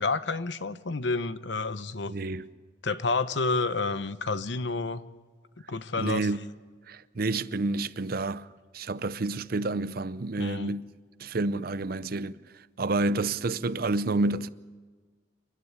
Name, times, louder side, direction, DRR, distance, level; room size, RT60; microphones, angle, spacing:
voice 1, 0.0-2.1 2.8-5.0 5.7-6.3 10.4-10.7, left 3 dB, 70° left, 0.9 m, -29 dB
voice 2, 2.1-2.4 6.0-6.4 6.9-8.5 8.7-10.8 11.2-12.3 12.8-14.5, right 2 dB, 50° right, 0.6 m, -29 dB
29.5 x 12.0 x 9.5 m
head